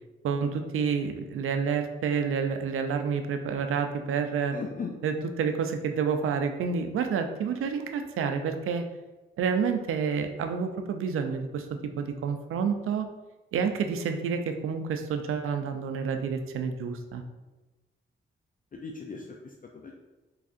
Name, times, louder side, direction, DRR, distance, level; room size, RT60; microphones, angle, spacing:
voice 1, 0.2-4.6 5.0-8.9 9.4-13.1 13.5-17.2, right 6 dB, 80° right, 6 dB, 0.4 m, -29 dB
voice 2, 4.5-4.9 18.7-19.9, left 5 dB, 40° left, 1 dB, 0.4 m, -38 dB
3.5 x 3.2 x 2.5 m, 1.1 s
cardioid pair, 50°, 21 cm